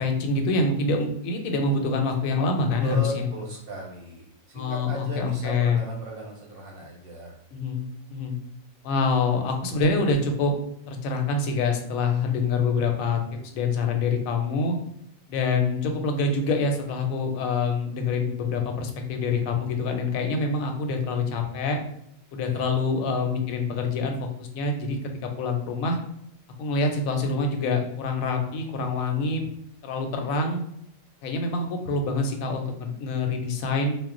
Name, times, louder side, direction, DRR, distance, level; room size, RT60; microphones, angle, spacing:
voice 1, 0.0-3.3 4.5-5.8 7.5-7.8 8.1-8.3 8.8-10.5 10.9-13.2 13.5-14.8 15.3-21.8 22.3-26.0 26.6-29.5 29.8-30.6 31.2-34.0, left 3 dB, 90° left, 4 dB, 1.0 m, -26 dB
voice 2, 2.8-4.3 4.5-7.3 22.5-22.7, right 1 dB, 55° right, -2 dB, 0.7 m, -36 dB
2.3 x 2.0 x 3.6 m, 0.74 s
omnidirectional pair, 1.4 m